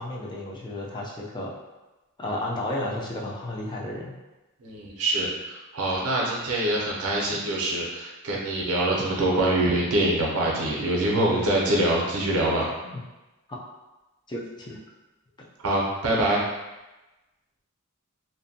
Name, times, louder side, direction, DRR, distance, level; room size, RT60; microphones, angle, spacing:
voice 1, 0.0-1.5 2.2-4.1 11.3-11.5 12.8-13.0 14.3-14.8, left 1 dB, 20° left, -3 dB, 0.4 m, -32 dB
voice 2, 4.6-12.7 15.6-16.4, right 1 dB, 80° right, -3 dB, 0.6 m, -24 dB
2.6 x 2.1 x 2.6 m, 1.1 s
head